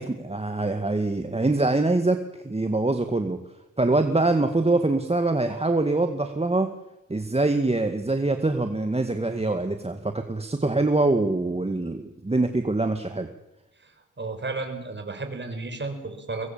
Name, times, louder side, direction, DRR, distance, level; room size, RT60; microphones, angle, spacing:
voice 1, 0.0-2.2 2.4-3.4 3.8-6.7 7.1-13.3, right 2 dB, 20° right, 7 dB, 2.0 m, -24 dB
voice 2, 13.8-16.5, right 3 dB, 35° right, 6 dB, 5.9 m, -33 dB
24.0 x 20.5 x 7.4 m, 0.92 s
cardioid pair, 75°, 32 cm